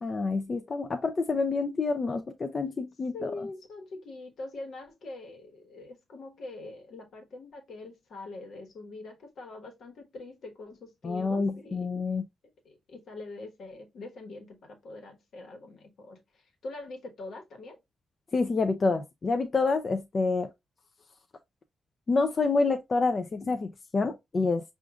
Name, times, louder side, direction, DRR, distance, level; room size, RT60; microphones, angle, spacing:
voice 1, 0.0-3.3 11.0-12.2 18.3-20.5 22.1-24.6, left 3 dB, 35° left, 0.4 m, -28 dB
voice 2, 3.1-11.9 12.6-17.8, left 2 dB, 70° left, 1.2 m, -43 dB
6.1 x 2.5 x 2.3 m
wide cardioid pair, 125°, 0 cm